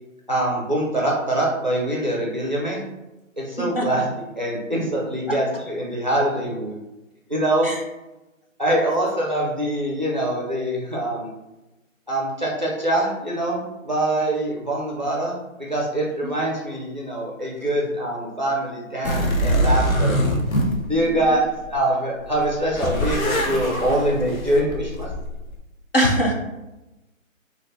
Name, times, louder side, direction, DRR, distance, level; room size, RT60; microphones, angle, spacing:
voice 1, 0.3-2.8 3.4-6.7 7.3-7.7 8.6-11.3 12.1-20.2 20.9-21.4 21.7-25.1, right 1 dB, 35° right, -3 dB, 0.4 m, -24 dB
sound 1, 19.0-21.8 22.2-25.6, equal, 80° left, 0.7 m, -24 dB
voice 2, 21.0-21.3 25.9-26.3, equal, 45° left, -1 dB, 0.4 m, -21 dB
2.5 x 2.5 x 3.3 m, 1.0 s
hypercardioid pair, 170°, 41 cm